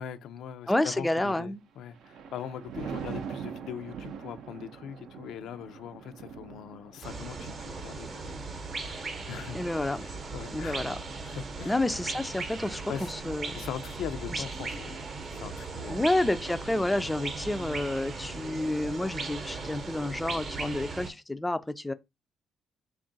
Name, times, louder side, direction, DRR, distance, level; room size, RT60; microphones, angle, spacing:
voice 1, 0.0-10.8 11.2-11.8 12.9-13.1 13.5-16.0, left 8 dB, 75° left, 0.4 m, -41 dB
voice 2, 0.7-1.6 9.5-10.0 10.5-11.0 11.7-12.8 13.1-13.6 15.9-21.9, left 1 dB, 10° left, 0.3 m, -29 dB
Thunder, 1.6-13.1 13.5-13.9, right 7 dB, 70° right, 0.5 m, -44 dB
sound 1, 7.0-21.1, right 3 dB, 45° right, 0.8 m, -38 dB
3.6 x 2.4 x 3.9 m
cardioid pair, 95°, 0 cm